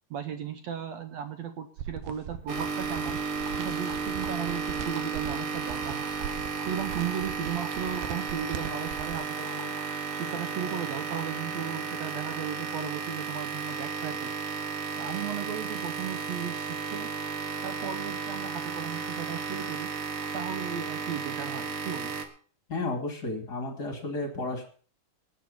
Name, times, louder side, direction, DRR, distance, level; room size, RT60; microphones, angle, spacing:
voice 1, 0.1-3.2 3.5-6.1 6.7-9.7 10.1-14.3 15.0-17.1 17.6-19.9 20.3-22.2, right 8 dB, 75° right, 8 dB, 1.6 m, -36 dB
sound 1, 1.8-9.2, right 10 dB, 90° right, 2.6 m, -41 dB
sound 2, 2.5-22.3, right 5 dB, 55° right, 1.7 m, -34 dB
voice 2, 22.7-24.7, left 2 dB, 30° left, 4 dB, 2.5 m, -32 dB
19.0 x 7.4 x 5.5 m, 0.42 s
omnidirectional pair, 4.1 m